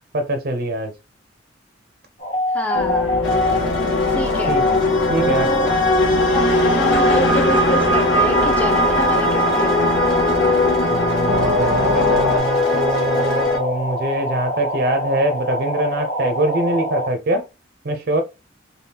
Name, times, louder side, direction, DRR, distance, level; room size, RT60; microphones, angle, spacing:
voice 1, 0.1-0.9 4.5-4.6 5.1-5.5 10.9-17.4 17.8-18.2, right 1 dB, 50° right, 0.5 m, -23 dB
sound 1, 2.2-17.1, equal, 40° left, 1.0 m, -26 dB
voice 2, 2.5-3.4 4.1-4.6 5.1-5.7 6.3-10.1, right 1 dB, 5° left, 0.5 m, -27 dB
sound 2, 2.7-12.4, left 3 dB, 85° left, 0.6 m, -22 dB
sound 3, 3.2-13.6, left 1 dB, 65° left, 1.2 m, -21 dB
3.4 x 2.2 x 2.7 m
head